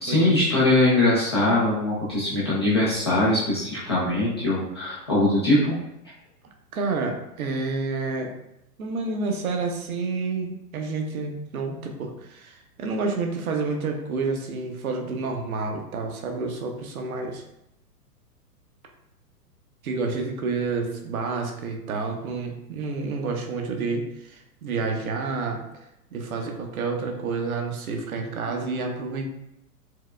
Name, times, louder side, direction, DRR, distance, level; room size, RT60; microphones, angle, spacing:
voice 1, 0.0-5.8, left 2 dB, 20° left, -8 dB, 0.3 m, -22 dB
voice 2, 6.7-8.3 8.8-17.4 19.8-25.6 26.1-29.3, right 4 dB, 65° right, 2 dB, 0.8 m, -29 dB
4.6 x 2.1 x 2.2 m, 0.83 s
hypercardioid pair, 120°, 47 cm